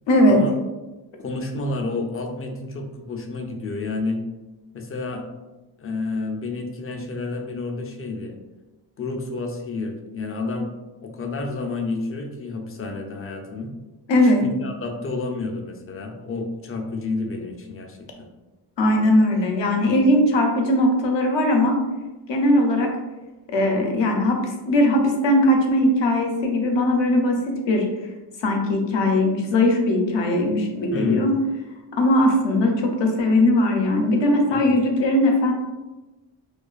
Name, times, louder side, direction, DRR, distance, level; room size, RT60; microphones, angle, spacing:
voice 1, 0.1-0.4 14.1-14.4 18.8-21.8 22.3-22.9 23.5-27.9 28.4-31.4 31.9-35.5, left 1 dB, 65° left, 2 dB, 0.7 m, -19 dB
voice 2, 1.2-4.2 4.7-5.2 5.8-8.4 9.0-10.7 11.0-13.7 14.2-18.3 30.9-31.3 34.5-34.8, left 3 dB, 30° left, 3 dB, 0.4 m, -30 dB
2.4 x 2.3 x 2.3 m, 1.1 s
cardioid pair, 65°, 47 cm